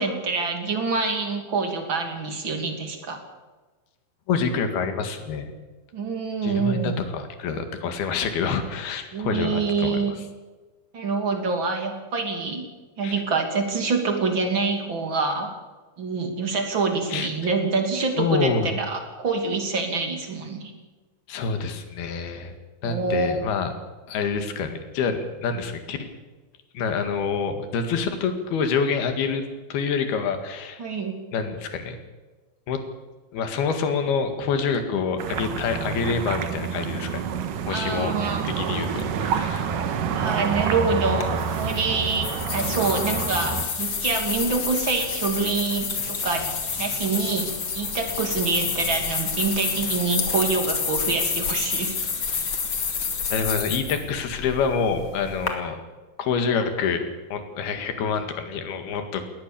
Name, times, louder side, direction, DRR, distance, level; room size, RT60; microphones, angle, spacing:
voice 1, 0.0-3.2 5.9-6.9 9.1-10.1 10.9-12.6 13.0-15.5 16.0-20.7 22.8-23.4 30.8-31.2 37.7-38.4 40.1-41.3 41.5-51.9 52.3-52.4, right 4 dB, 35° right, 4 dB, 3.2 m, -26 dB
voice 2, 4.3-5.5 6.4-10.1 13.0-13.1 17.1-17.3 18.2-18.7 21.3-22.5 22.8-23.7 24.1-26.1 26.7-29.4 29.7-30.8 31.3-32.0 32.7-32.8 33.3-37.2 37.7-38.1 38.5-39.8 53.3-55.8 56.2-57.1 57.3-59.2, left 5 dB, 75° left, 7 dB, 3.9 m, -27 dB
sound 1, 35.2-43.7, right 6 dB, 65° right, 2.8 m, -28 dB
sound 2, 41.2-55.5, left 5 dB, 35° left, 2.7 m, -29 dB
20.5 x 19.0 x 7.0 m, 1.3 s
omnidirectional pair, 4.5 m